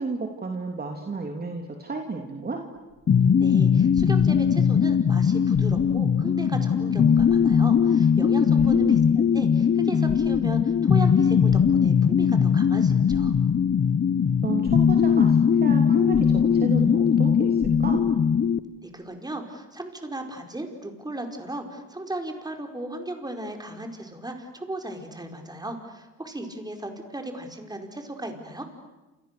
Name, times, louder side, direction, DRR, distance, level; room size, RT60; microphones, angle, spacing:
voice 1, 0.0-2.6 8.5-9.1 14.4-18.1, right 3 dB, 30° right, 2 dB, 3.0 m, -32 dB
sound 1, 2.7-4.8 5.4-6.1 6.5-6.6 7.1-7.8 8.6-9.4 9.9-10.8 11.5-12.2 13.1-13.8 14.3-14.4 14.6-15.4 16.1-16.9 17.2-17.3 17.6-18.2 18.9-19.0, left 6 dB, 60° left, 6.2 m, -39 dB
sound 2, 3.1-18.6, left 7 dB, 40° left, 1.1 m, -20 dB
voice 2, 3.4-13.3 18.8-28.7, right 1 dB, 15° right, 4 dB, 4.9 m, -36 dB
30.0 x 28.0 x 6.9 m, 1.1 s
cardioid pair, 90°, 30 cm